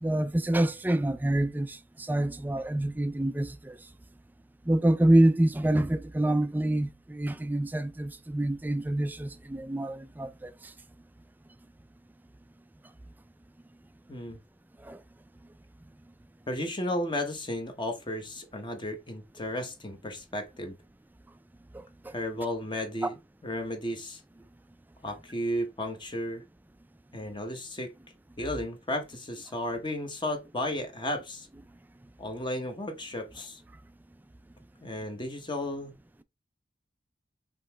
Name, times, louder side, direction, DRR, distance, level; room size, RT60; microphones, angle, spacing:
voice 1, 0.0-3.8 4.7-10.5 14.8-15.0 21.7-22.1 23.0-23.1, right 1 dB, 10° right, 0.3 m, -26 dB
voice 2, 14.1-14.4 16.5-20.7 22.1-23.2 23.4-24.2 25.0-26.4 27.1-27.9 28.4-31.5 32.2-33.6 34.8-35.9, left 1 dB, 25° left, 0.9 m, -34 dB
5.3 x 2.9 x 3.3 m
head